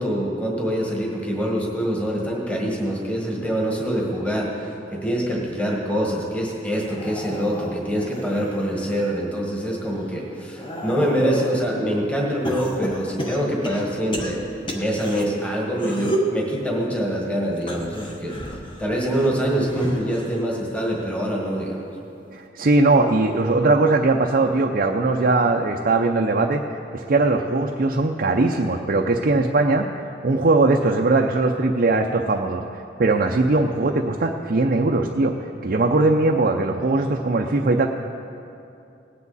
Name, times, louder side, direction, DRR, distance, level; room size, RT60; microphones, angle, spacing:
voice 1, 0.0-4.5 4.9-14.4 14.7-18.4 18.8-21.8, equal, 5° left, -2 dB, 1.6 m, -25 dB
sound 1, 6.8-9.1 9.6-11.6 12.4-15.2 15.7-16.4 17.6-20.4 20.8-21.2 22.4-22.5, equal, 25° left, 1.1 m, -31 dB
voice 2, 22.3-26.6 26.9-29.9 30.2-32.6 33.0-35.3 35.6-37.9, right 2 dB, 50° right, 2 dB, 0.6 m, -20 dB
18.0 x 9.6 x 4.1 m, 2.7 s
head